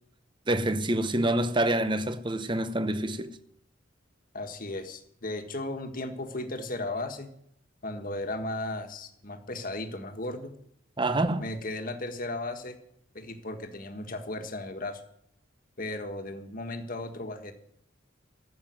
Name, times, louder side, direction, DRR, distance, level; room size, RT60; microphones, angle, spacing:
voice 1, 0.5-3.3 11.0-11.4, right 1 dB, 25° right, 0.8 m, -27 dB
voice 2, 4.3-7.3 7.8-10.5 11.4-12.8 13.1-15.0 15.8-17.5, left 2 dB, 40° left, 1.6 m, -35 dB
14.0 x 7.6 x 9.4 m
head